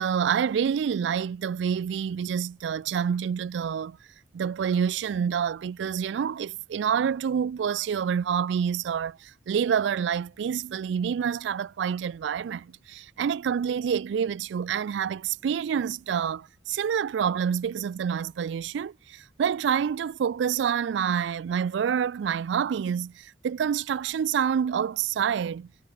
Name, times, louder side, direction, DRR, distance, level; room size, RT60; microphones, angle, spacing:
voice 1, 0.0-4.0 4.3-25.7, right 7 dB, 75° right, 0.3 m, -27 dB
head